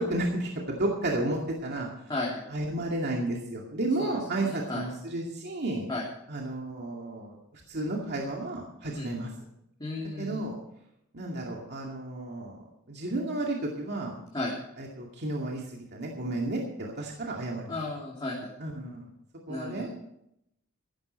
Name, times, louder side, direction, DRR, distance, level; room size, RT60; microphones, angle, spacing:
voice 1, 0.0-1.9 2.5-5.9 6.3-9.3 10.2-10.6 11.1-12.6 12.9-14.1 14.8-17.8 18.6-19.1 19.5-19.9, right 2 dB, 50° right, -1 dB, 2.3 m, -32 dB
voice 2, 2.1-2.4 4.0-4.1 4.4-4.8 5.9-6.0 8.9-9.1 9.8-10.4 14.3-14.5 17.7-18.5 19.5-19.9, left 2 dB, 20° left, -5 dB, 3.1 m, -34 dB
15.0 x 13.0 x 4.5 m, 0.77 s
head